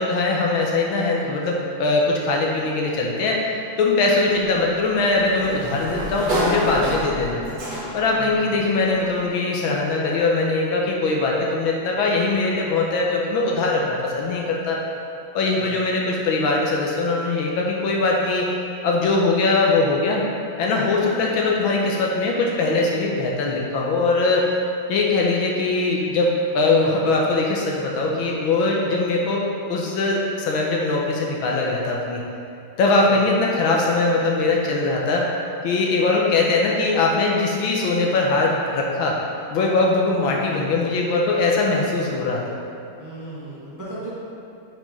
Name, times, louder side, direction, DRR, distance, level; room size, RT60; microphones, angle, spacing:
voice 1, 0.0-3.4 3.8-7.4 7.9-14.8 15.3-18.5 18.8-20.2 20.6-24.5 24.9-29.4 29.7-32.2 32.8-35.3 35.6-39.2 39.5-42.4, left 3 dB, 75° left, -2 dB, 1.5 m, -21 dB
Sliding door, 4.3-8.2, right 1 dB, 30° right, 1.2 m, -28 dB
voice 2, 8.1-8.5 15.5-15.8 33.0-33.3 43.0-44.2, right 2 dB, 10° right, -10 dB, 1.4 m, -37 dB
5.8 x 5.1 x 5.3 m, 2.7 s
omnidirectional pair, 2.3 m